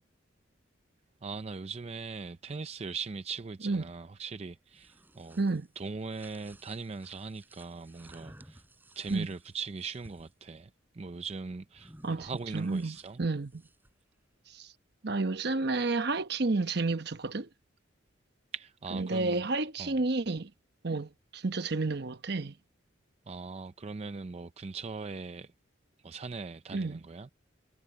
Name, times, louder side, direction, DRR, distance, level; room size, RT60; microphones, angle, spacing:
voice 1, 1.2-5.4 5.8-8.6 9.0-13.2 18.5-19.5 19.8-20.0 23.3-25.5 26.0-27.3, right 4 dB, 35° right, 0.4 m, -40 dB
sound 1, 4.6-10.3 11.7-14.0, right 1 dB, 10° right, 4.0 m, -56 dB
voice 2, 5.4-5.7 9.1-9.3 12.0-13.6 14.5-14.7 15.0-17.5 18.9-20.5 20.8-22.5 26.7-27.0, right 3 dB, 55° right, 1.0 m, -31 dB
head